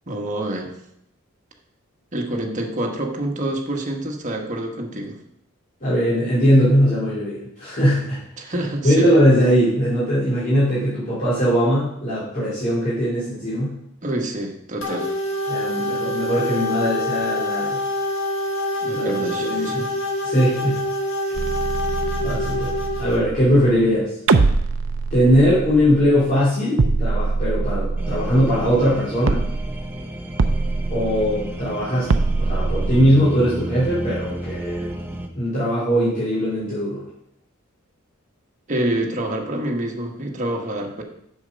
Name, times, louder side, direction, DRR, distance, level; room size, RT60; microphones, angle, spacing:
voice 1, 0.1-0.7 2.1-5.2 8.4-9.1 14.0-15.1 18.8-19.9 38.7-41.0, right 1 dB, 35° right, 1 dB, 1.3 m, -27 dB
voice 2, 5.8-8.2 8.5-8.6 8.8-13.7 15.5-17.8 18.9-19.1 19.4-19.8 20.2-20.8 22.2-24.1 25.1-29.4 30.9-34.9 35.3-37.0, equal, 40° left, -11 dB, 3.2 m, -20 dB
sound 1, 14.8-23.2, left 1 dB, 75° left, 1.4 m, -26 dB
sound 2, 21.3-23.9 24.3-26.4 26.8-29.0 29.3-29.9 30.4-31.6 32.1-33.0, right 3 dB, 65° right, 0.6 m, -23 dB
sound 3, 28.0-35.3, right 1 dB, 10° right, 0.7 m, -33 dB
7.5 x 6.6 x 5.2 m, 0.74 s
head